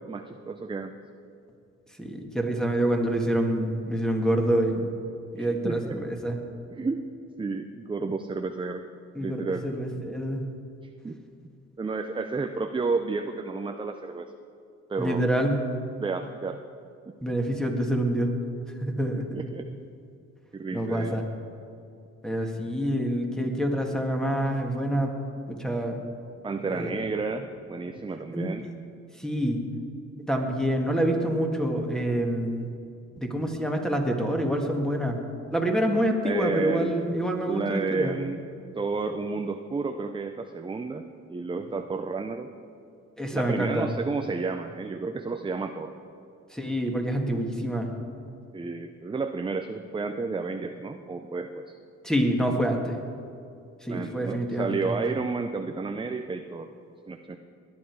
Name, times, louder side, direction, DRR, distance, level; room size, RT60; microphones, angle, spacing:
voice 1, 0.1-0.9 5.4-6.0 6.7-7.1 7.4-8.8 9.2-9.6 11.0-11.2 11.8-14.3 14.9-15.2 16.0-16.6 19.1-19.7 20.5-21.2 26.4-28.7 36.2-36.9 37.4-38.4 38.8-42.5 43.3-45.9 48.5-51.7 53.9-56.7 57.1-57.4, right 4 dB, 15° right, 6 dB, 0.6 m, -31 dB
voice 2, 2.0-4.8 5.3-6.4 9.1-10.5 15.0-15.6 17.2-18.3 18.8-19.4 20.7-21.2 22.2-25.1 25.5-26.0 26.7-27.1 28.3-28.7 29.2-29.6 30.3-32.7 33.2-35.2 35.5-38.2 43.2-43.9 46.5-47.9 52.0-53.0 53.8-55.0, right 1 dB, ahead, 2 dB, 1.9 m, -27 dB
18.5 x 10.5 x 4.7 m, 2.4 s
cardioid pair, 90°, 30 cm